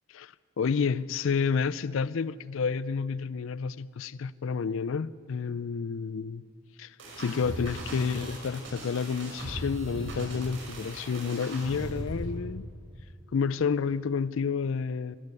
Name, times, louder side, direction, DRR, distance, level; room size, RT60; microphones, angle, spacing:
voice 1, 0.1-6.4 6.8-12.6 13.3-15.2, left 5 dB, 70° left, 0.4 m, -30 dB
sound 1, 7.0-12.3, right 1 dB, 60° right, 5.8 m, -38 dB
25.5 x 12.0 x 9.6 m
head